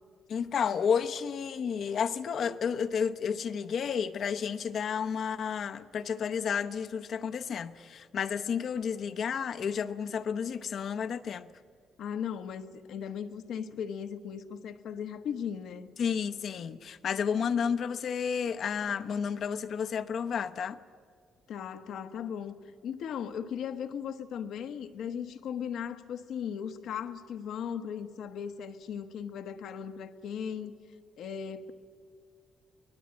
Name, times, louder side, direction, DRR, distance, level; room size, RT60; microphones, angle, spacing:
voice 1, 0.3-11.5 16.0-20.8, left 7 dB, 60° left, 0.9 m, -31 dB
voice 2, 12.0-15.9 21.5-22.5 22.8-30.7 31.2-31.7, left 8 dB, 75° left, 1.2 m, -37 dB
23.5 x 19.0 x 8.7 m
cardioid pair, 90°, 0 cm